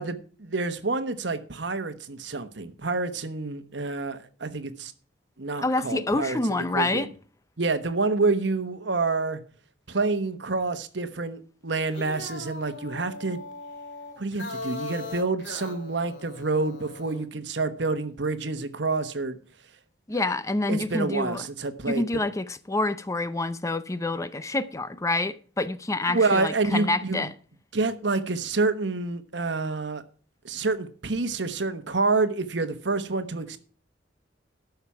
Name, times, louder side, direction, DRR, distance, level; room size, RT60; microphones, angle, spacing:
voice 1, 0.0-4.9 5.4-6.4 6.7-7.1 7.6-9.4 9.9-13.4 14.2-19.4 20.1-20.2 20.7-22.0 26.1-27.3 27.7-30.0 30.4-33.6, right 3 dB, 70° right, 1.1 m, -28 dB
voice 2, 5.6-7.1 20.1-21.4 21.9-27.3, left 2 dB, 15° left, 0.5 m, -27 dB
sound 1, 11.8-17.2, left 3 dB, 75° left, 2.9 m, -39 dB
13.0 x 5.8 x 5.7 m
head